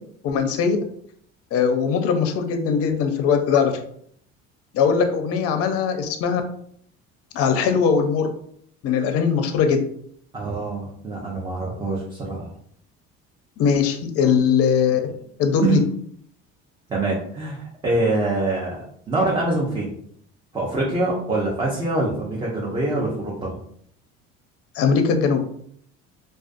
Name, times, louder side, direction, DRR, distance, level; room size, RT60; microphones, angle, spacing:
voice 1, 0.2-0.8 1.5-3.8 4.7-6.4 7.3-8.3 8.8-9.8 13.6-15.0 15.4-15.8 24.7-25.4, left 6 dB, 50° left, 6 dB, 0.5 m, -20 dB
voice 2, 10.3-12.5 15.6-15.8 16.9-19.9 20.5-23.6, right 2 dB, 15° right, -4 dB, 0.5 m, -24 dB
2.4 x 2.3 x 2.5 m, 0.64 s
cardioid pair, 110°, 30 cm